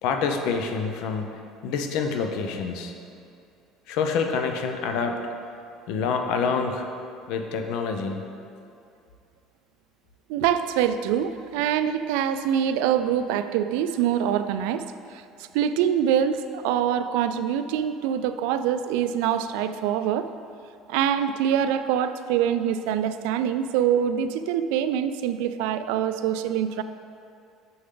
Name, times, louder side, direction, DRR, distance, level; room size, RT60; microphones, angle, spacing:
voice 1, 0.0-2.9 3.9-5.2 5.9-6.9 7.3-8.2, left 5 dB, 70° left, 5 dB, 0.7 m, -27 dB
voice 2, 10.3-14.8 15.1-15.2 15.5-20.3 20.9-26.8, right 9 dB, 90° right, 11 dB, 0.3 m, -24 dB
7.0 x 6.7 x 3.8 m, 2.5 s
cardioid pair, 145°, 0 cm